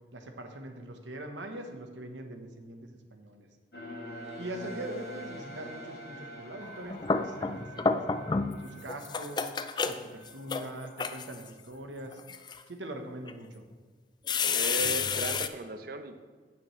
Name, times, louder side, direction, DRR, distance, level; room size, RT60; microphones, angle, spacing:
voice 1, 0.1-3.5 4.4-8.0 8.6-9.5 9.8-12.2 12.7-13.7, right 1 dB, 85° right, 5 dB, 1.1 m, -42 dB
sound 1, 3.7-11.0, equal, 60° left, 1.9 m, -46 dB
sound 2, 6.7-8.6 8.9-11.5 12.1-12.6 13.3-13.4 14.3-15.5, left 5 dB, 25° left, 0.3 m, -30 dB
voice 2, 14.5-16.2, right 2 dB, 55° right, 9 dB, 0.7 m, -36 dB
16.5 x 6.1 x 3.2 m, 1.5 s
head